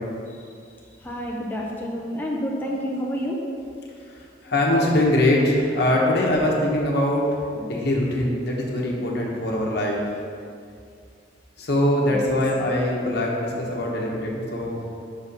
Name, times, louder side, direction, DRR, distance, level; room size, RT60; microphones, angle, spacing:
voice 1, 0.3-0.6 1.0-3.4 12.1-12.2, equal, 10° left, -3 dB, 0.6 m, -29 dB
voice 2, 4.1-10.2 11.6-14.8, left 1 dB, 60° left, -2 dB, 1.1 m, -22 dB
5.6 x 4.3 x 5.4 m, 2.3 s
head